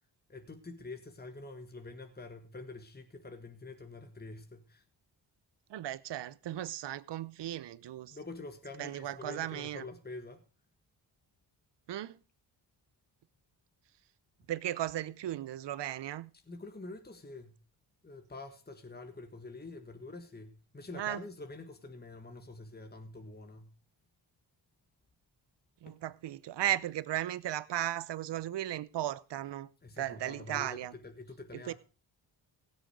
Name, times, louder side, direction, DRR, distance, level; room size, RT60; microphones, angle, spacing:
voice 1, 0.3-4.8 8.1-10.4 16.5-17.6 18.0-23.8 25.9-26.0 29.8-31.7, left 3 dB, 20° left, 1.7 m, -46 dB
voice 2, 5.7-8.2 8.8-9.8 11.9-12.2 14.5-16.3 20.9-21.2 25.8-29.7 30.0-30.9 31.7-31.8, right 13 dB, 55° right, 0.8 m, -36 dB
16.5 x 6.6 x 5.1 m
supercardioid pair, 50°, 50 cm